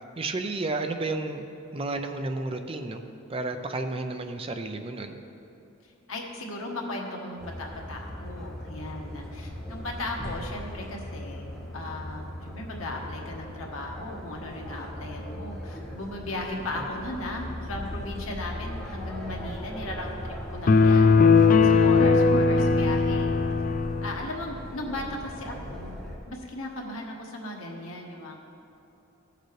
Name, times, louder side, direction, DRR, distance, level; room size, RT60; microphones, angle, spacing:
voice 1, 0.2-1.4 1.7-3.0 3.3-5.2 21.9-22.5, right 2 dB, 25° right, 6 dB, 0.4 m, -32 dB
voice 2, 6.1-23.4 24.0-26.0 26.3-28.3, left 1 dB, 85° left, 0 dB, 1.3 m, -37 dB
sound 1, 7.4-26.2, left 1 dB, 5° left, 1.4 m, -38 dB
sound 2, 20.7-24.2, left 4 dB, 40° left, 0.3 m, -19 dB
15.5 x 6.6 x 3.2 m, 2.7 s
head